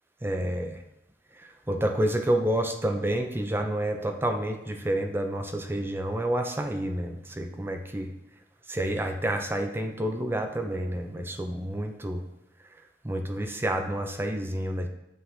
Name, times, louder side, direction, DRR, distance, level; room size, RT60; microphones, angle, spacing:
voice 1, 0.2-0.8 1.7-8.1 8.7-12.2 13.0-14.9, right 1 dB, 15° right, 5 dB, 0.5 m, -29 dB
7.8 x 3.4 x 5.9 m, 0.86 s
head